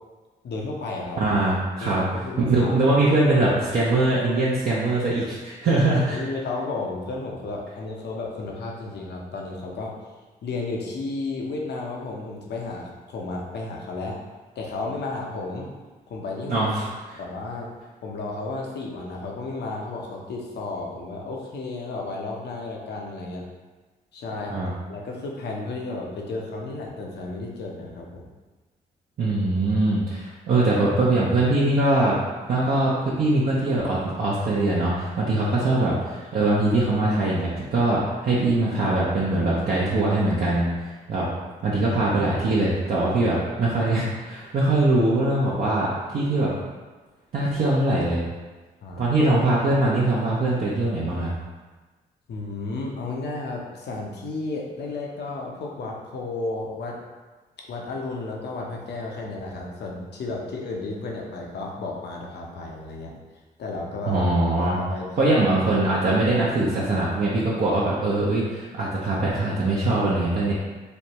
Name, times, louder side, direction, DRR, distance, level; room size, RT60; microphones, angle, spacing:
voice 1, 0.4-1.2 1.8-2.7 5.7-9.9 10.4-14.2 14.5-15.7 16.1-16.6 17.2-17.7 18.0-23.4 24.1-24.6 24.9-28.3 48.8-49.1 52.3-57.0 57.7-63.1 63.6-64.2 64.6-65.4, left 3 dB, 60° left, -1 dB, 0.7 m, -33 dB
voice 2, 1.2-2.0 2.4-6.2 16.5-17.2 24.5-24.7 29.2-32.2 32.5-41.3 41.6-46.5 47.3-48.2 49.0-51.3 64.1-64.8 65.2-70.5, right 2 dB, 50° right, -7 dB, 0.6 m, -22 dB
3.1 x 2.1 x 2.9 m, 1.3 s
hypercardioid pair, 45°, 19 cm